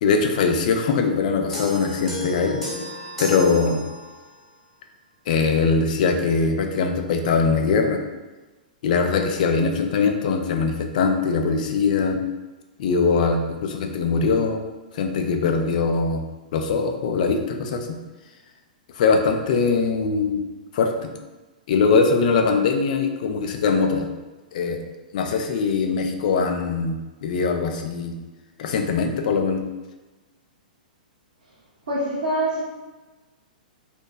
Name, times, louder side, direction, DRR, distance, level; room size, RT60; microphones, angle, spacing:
voice 1, 0.0-2.6 3.2-3.8 5.3-8.0 8.8-12.2 12.8-14.6 14.9-16.2 16.5-17.9 19.0-20.4 20.7-21.1 21.7-24.1 24.5-24.8 25.1-28.1 28.6-29.6, left 4 dB, 60° left, 4 dB, 0.4 m, -21 dB
sound 1, 1.5-4.4, equal, ahead, 1.0 m, -33 dB
voice 2, 31.9-32.6, right 1 dB, 75° right, -9 dB, 0.7 m, -24 dB
2.8 x 2.1 x 2.2 m, 1.2 s
hypercardioid pair, 125°, 5 cm